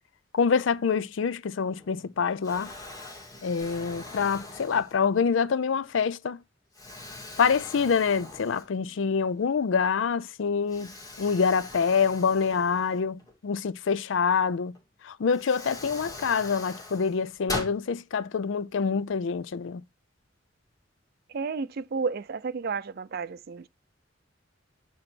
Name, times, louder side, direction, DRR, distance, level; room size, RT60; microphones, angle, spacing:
voice 1, 0.3-2.7 3.4-6.4 7.4-14.7 15.0-19.8, left 6 dB, 85° left, 0.5 m, -26 dB
Explosion, 1.7-2.1 2.4-5.3 5.9-6.0 6.7-9.0 9.3-9.4 10.7-13.3 14.7-14.8 15.3-17.8, left 2 dB, 20° left, 2.1 m, -41 dB
voice 2, 21.3-23.7, right 5 dB, 55° right, 0.5 m, -32 dB
8.9 x 3.0 x 6.0 m
head